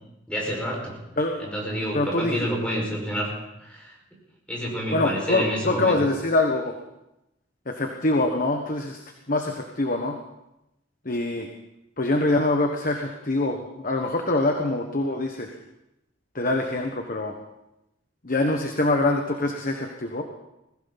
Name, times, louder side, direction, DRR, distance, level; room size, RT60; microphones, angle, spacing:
voice 1, 0.3-1.0 1.4-3.3 3.6-4.2 4.5-6.0, equal, 5° left, -3 dB, 5.4 m, -29 dB
voice 2, 1.2-1.5 1.9-2.5 4.9-6.8 7.7-10.2 11.0-11.5 12.0-15.5 16.3-17.3 18.2-20.2, left 2 dB, 45° left, 3 dB, 1.3 m, -24 dB
21.5 x 15.5 x 4.1 m, 0.90 s
head